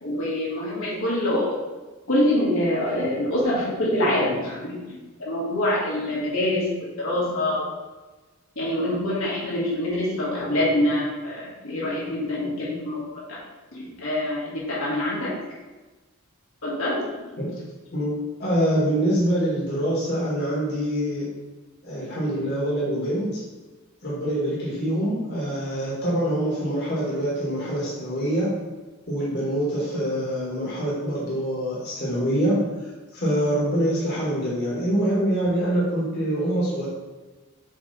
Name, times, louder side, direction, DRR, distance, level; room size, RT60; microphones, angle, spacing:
voice 1, 0.0-1.5 2.1-6.7 7.0-7.6 8.6-13.2 13.7-15.3 16.6-17.3, left 1 dB, 75° left, -6 dB, 1.9 m, -25 dB
voice 2, 17.9-21.3 21.8-23.4 24.0-28.5 29.1-32.6 33.1-36.9, right 1 dB, 50° left, -7 dB, 1.7 m, -25 dB
7.0 x 3.2 x 4.1 m, 1.2 s
head